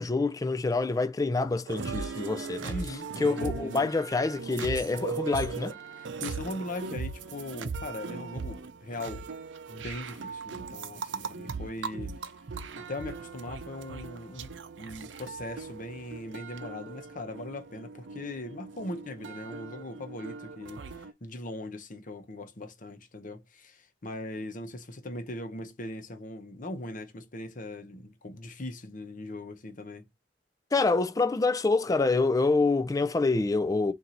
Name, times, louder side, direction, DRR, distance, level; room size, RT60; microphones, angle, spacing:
voice 1, 0.0-2.7 3.2-5.8 30.7-33.9, left 3 dB, 20° left, 0.4 m, -26 dB
sound 1, 1.7-21.1, right 5 dB, 85° right, 0.6 m, -39 dB
voice 2, 2.7-3.9 6.0-9.2 9.7-12.1 12.8-30.0, left 2 dB, 45° left, 0.9 m, -40 dB
4.4 x 2.6 x 3.9 m
head